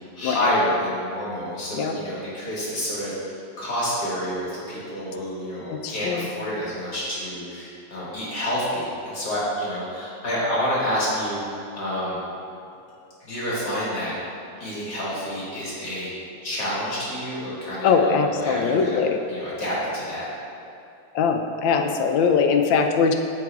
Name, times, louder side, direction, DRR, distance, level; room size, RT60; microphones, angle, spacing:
voice 1, 0.2-11.4 11.7-12.2 13.2-14.1 14.6-16.1 16.4-19.0 19.3-20.3, equal, 60° left, -9 dB, 2.4 m, -28 dB
voice 2, 5.7-6.3 17.8-19.2 21.1-23.2, left 5 dB, 85° left, 5 dB, 1.3 m, -21 dB
14.0 x 4.9 x 2.4 m, 2.7 s
omnidirectional pair, 2.0 m